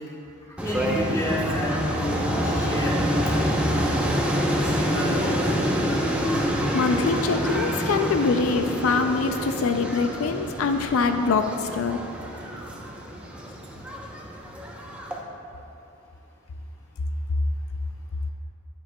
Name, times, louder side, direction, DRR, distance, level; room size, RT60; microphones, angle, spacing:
voice 1, 0.6-3.0 3.3-3.4 4.6-5.5, equal, 15° left, -6 dB, 1.5 m, -30 dB
sound 1, 0.6-15.2, equal, 5° right, 0.7 m, -27 dB
voice 2, 6.3-12.0, left 4 dB, 85° left, 6 dB, 0.4 m, -24 dB
10.5 x 9.7 x 2.2 m, 2.7 s
head